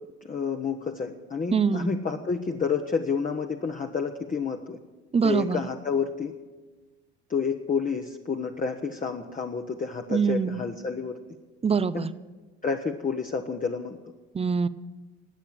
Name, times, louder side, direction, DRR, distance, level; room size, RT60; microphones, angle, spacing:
voice 1, 0.2-4.8 5.2-6.3 7.3-11.2 11.9-12.1 12.6-14.0, left 5 dB, 25° left, 3 dB, 1.1 m, -29 dB
voice 2, 1.5-1.9 5.1-5.6 10.1-10.6 11.6-12.1 14.3-14.7, right 5 dB, 20° right, 16 dB, 0.6 m, -24 dB
20.0 x 8.4 x 8.3 m, 1.3 s
hypercardioid pair, 65°, 34 cm